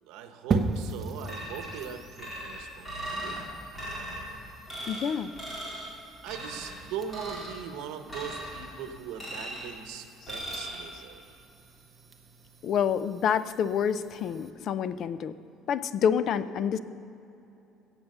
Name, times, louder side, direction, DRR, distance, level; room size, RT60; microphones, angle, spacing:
voice 1, 0.0-3.4 6.2-11.4, right 8 dB, 85° right, 7 dB, 1.0 m, -40 dB
sound 1, 0.5-14.5, right 3 dB, 20° right, 0.8 m, -39 dB
sound 2, 1.3-1.8 2.2-3.4 3.7-4.2 4.7-5.1 5.4-5.9 6.3-6.7 7.1-7.6 8.1-8.7 9.2-9.7 10.3-10.8, right 1 dB, 15° left, 3.6 m, -38 dB
voice 2, 4.9-5.3 12.6-15.4 15.7-16.8, left 8 dB, 40° left, 14 dB, 0.4 m, -27 dB
16.5 x 7.5 x 6.7 m, 2.9 s
cardioid pair, 175°, 0 cm